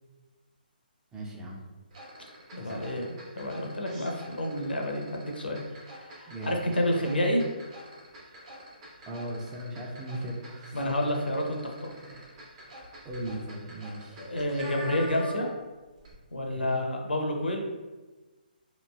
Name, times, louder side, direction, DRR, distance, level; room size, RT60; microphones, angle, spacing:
voice 1, 1.1-1.6 2.6-2.9 6.3-6.6 9.0-10.7 12.0-12.3 13.0-14.2 16.5-16.8, right 1 dB, 15° right, -2 dB, 0.4 m, -38 dB
sound 1, 1.9-15.7 16.0-16.1, equal, 35° right, 0.8 m, -45 dB
voice 2, 2.5-5.6 5.9-7.4 10.7-11.9 14.2-15.5 16.3-17.6, left 1 dB, 85° left, 1 dB, 0.6 m, -29 dB
3.0 x 2.4 x 2.3 m, 1.2 s
figure-of-eight pair, 140°, 5 cm